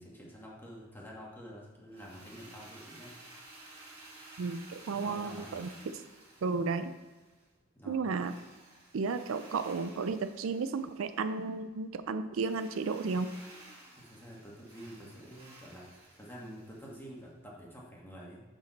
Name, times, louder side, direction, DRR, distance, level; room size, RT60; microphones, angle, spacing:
voice 1, 0.0-3.1 4.9-5.6 7.7-8.1 14.0-15.9 16.1-18.4, equal, 10° left, -4 dB, 1.6 m, -48 dB
Drill, 1.9-7.5 8.1-11.4 12.4-17.2, right 2 dB, 25° right, 2.1 m, -54 dB
voice 2, 4.4-5.7 6.4-6.9 7.9-8.3 8.9-13.3, right 4 dB, 85° right, 11 dB, 0.4 m, -33 dB
6.4 x 6.3 x 4.1 m, 1.3 s
head